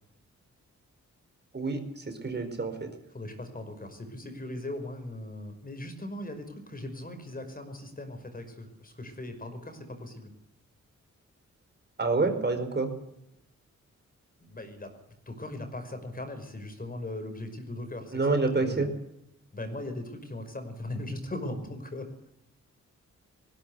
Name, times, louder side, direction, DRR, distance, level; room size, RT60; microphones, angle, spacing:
voice 1, 1.5-2.9 12.0-12.9 18.1-18.9, right 3 dB, 35° right, 7 dB, 4.7 m, -28 dB
voice 2, 3.1-10.3 14.4-18.2 18.6-18.9 19.5-22.1, left 1 dB, 30° left, 7 dB, 5.5 m, -39 dB
19.0 x 17.0 x 8.3 m, 0.81 s
cardioid pair, 90°, 29 cm